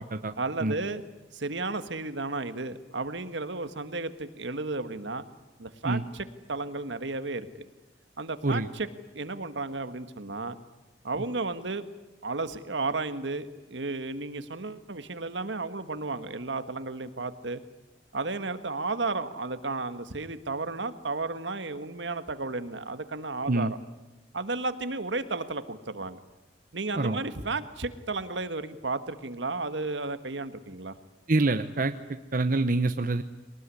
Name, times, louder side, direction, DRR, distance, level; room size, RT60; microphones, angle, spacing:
voice 1, 0.4-1.0 1.3-5.2 5.6-7.7 8.2-8.9 9.1-10.6 11.0-11.8 12.2-17.6 18.1-23.8 24.3-26.2 26.7-30.9, right 3 dB, 75° right, 10 dB, 1.6 m, -33 dB
voice 2, 31.3-33.2, right 2 dB, 45° right, 8 dB, 0.9 m, -26 dB
23.0 x 19.5 x 9.9 m, 1.1 s
head